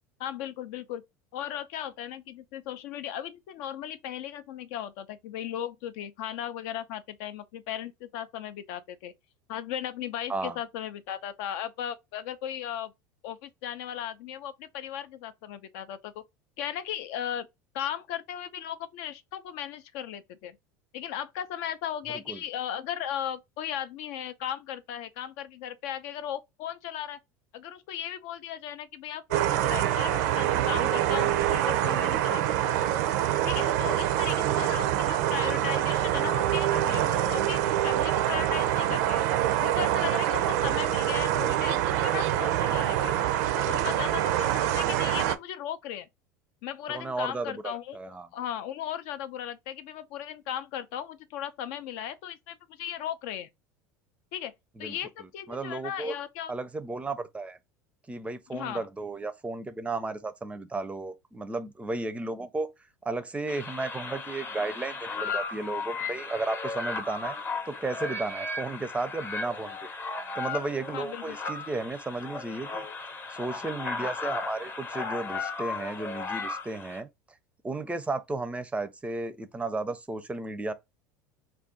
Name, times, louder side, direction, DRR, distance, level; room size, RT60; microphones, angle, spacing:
voice 1, 0.2-1.0 1.3-9.1 9.5-12.9 13.2-16.2 16.6-17.5 17.7-20.6 20.9-27.2 27.5-32.9 33.4-39.3 39.6-46.1 46.6-53.5 54.3-54.5 54.8-56.5 58.5-58.9 70.9-71.4, left 10 dB, 65° left, 0.4 m, -36 dB
voice 2, 22.1-22.4 46.9-48.3 54.8-56.1 56.5-57.6 58.1-62.7 63.0-67.4 67.7-69.9 70.4-72.9 73.3-77.1 77.6-80.7, right 3 dB, 15° right, 0.5 m, -34 dB
sound 1, 29.3-45.4, right 12 dB, 70° right, 0.4 m, -25 dB
sound 2, 63.5-77.0, left 4 dB, 25° left, 0.7 m, -35 dB
2.5 x 2.3 x 3.7 m
hypercardioid pair, 90°, 9 cm